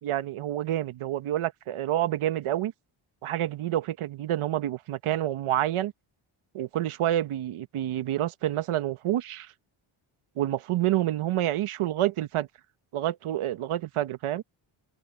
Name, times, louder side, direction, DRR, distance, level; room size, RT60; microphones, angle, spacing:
voice 1, 0.0-2.7 3.2-5.9 6.5-9.5 10.4-12.5 12.9-14.4, right 13 dB, 75° right, 1.2 m, -28 dB
cardioid pair, 120°, 50 cm